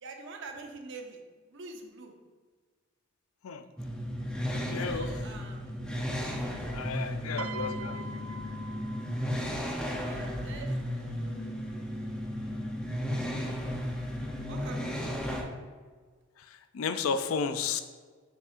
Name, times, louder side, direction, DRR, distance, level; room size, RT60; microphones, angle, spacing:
voice 1, 0.0-1.2 1.5-2.1 4.7-5.7 6.5-8.1 10.0-11.5 13.1-13.7 14.5-15.5, right 3 dB, 65° right, 3 dB, 0.8 m, -46 dB
sound 1, 3.8-15.4, equal, 5° left, 0.6 m, -34 dB
voice 2, 4.5-5.1 6.7-8.0 16.4-17.8, left 5 dB, 85° left, 9 dB, 0.4 m, -33 dB
Piano, 7.4-9.7 10.8-11.0, right 4 dB, 80° right, 0.3 m, -43 dB
6.4 x 6.0 x 2.5 m, 1.5 s
head